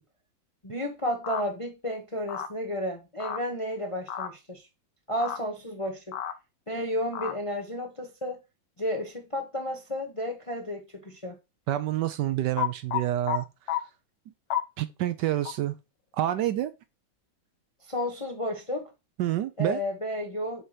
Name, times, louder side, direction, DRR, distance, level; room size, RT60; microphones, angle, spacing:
voice 1, 0.6-4.6 5.1-6.1 6.7-8.4 8.8-11.4 17.9-18.9 19.6-20.6, equal, 30° left, 0.6 m, -32 dB
sound 1, 1.2-1.4 2.3-2.5 3.2-3.4 4.1-4.3 5.2-5.4 6.1-6.3 7.1-7.3 12.6-13.4 13.7-13.8 14.5-14.6 15.5-15.6, left 10 dB, 80° left, 1.5 m, -30 dB
voice 2, 11.7-13.5 14.8-15.8 16.2-16.7 19.2-19.8, right 13 dB, 75° right, 1.1 m, -27 dB
7.8 x 2.8 x 4.9 m
omnidirectional pair, 2.1 m